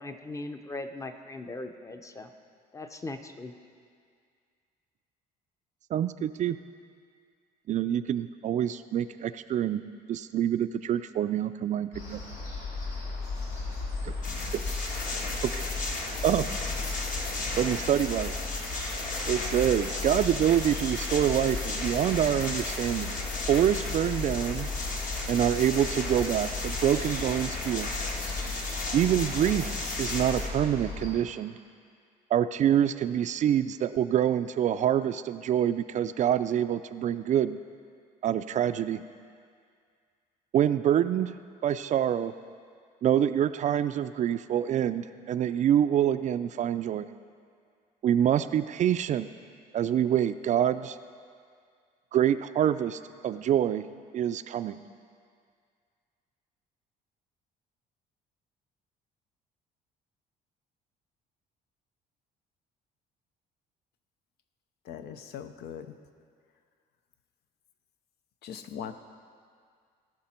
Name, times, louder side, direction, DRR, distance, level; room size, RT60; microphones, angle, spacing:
voice 1, 0.0-2.3 2.7-3.5, left 2 dB, 20° left, 7 dB, 0.7 m, -39 dB
voice 2, 5.9-6.6 7.7-9.8 10.1-12.2 14.0-14.1 15.4-15.6 16.2-16.5 17.6-18.4 19.3-23.2 23.5-24.7 25.3-27.9 28.9-29.7 30.0-31.6 32.3-37.6 38.2-39.0 40.5-41.4 41.6-42.3 43.0-47.1 48.0-49.3 49.7-51.0 52.1-53.8 54.1-54.8, right 10 dB, 45° right, 12 dB, 0.4 m, -26 dB
sound 1, 11.9-31.1, left 3 dB, 90° left, 2.3 m, -36 dB
sound 2, 14.2-30.5, left 2 dB, 50° left, 1.6 m, -35 dB
voice 3, 64.8-65.9 68.4-68.9, left 8 dB, 75° left, 9 dB, 0.7 m, -40 dB
18.0 x 6.0 x 4.4 m, 2.1 s
cardioid pair, 110°, 17 cm